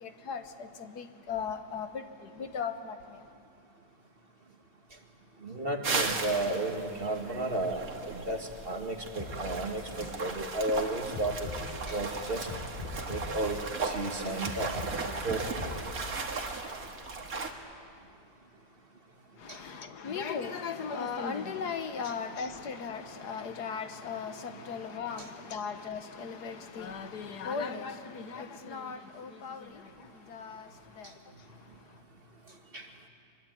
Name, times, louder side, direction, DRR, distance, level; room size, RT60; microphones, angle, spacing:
voice 1, 0.0-3.2 19.4-29.9 30.3-30.7 31.0-31.1, left 6 dB, 75° left, 1.8 m, -37 dB
voice 2, 5.4-7.8 8.1-11.5 11.9-12.5 13.1-13.6 13.8-14.9 15.2-15.4 19.5-19.6 32.7-32.9, right 2 dB, 35° right, 2.2 m, -33 dB
sound 1, 5.8-17.5, right 4 dB, 60° right, 2.3 m, -37 dB
sound 2, 9.2-10.4 10.7-15.8, left 3 dB, 25° left, 8.3 m, -41 dB
24.5 x 22.5 x 9.2 m
omnidirectional pair, 1.7 m